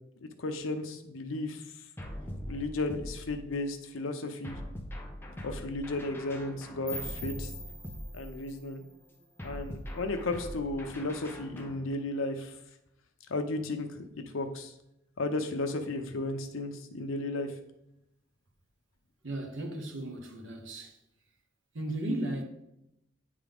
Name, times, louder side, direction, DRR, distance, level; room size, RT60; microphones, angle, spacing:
voice 1, 0.2-1.7 2.5-4.6 5.4-7.5 8.1-8.8 9.4-12.6 13.3-14.0 14.3-14.7 15.2-17.5, left 2 dB, 80° left, 0.7 m, -34 dB
sound 1, 2.0-3.7 4.4-8.6 9.4-11.9, equal, 10° left, 0.7 m, -42 dB
sound 2, 6.9-9.8, equal, 5° right, 1.6 m, -45 dB
voice 2, 19.2-21.0 21.7-22.4, right 1 dB, 70° right, 1.0 m, -35 dB
9.1 x 3.7 x 3.5 m
head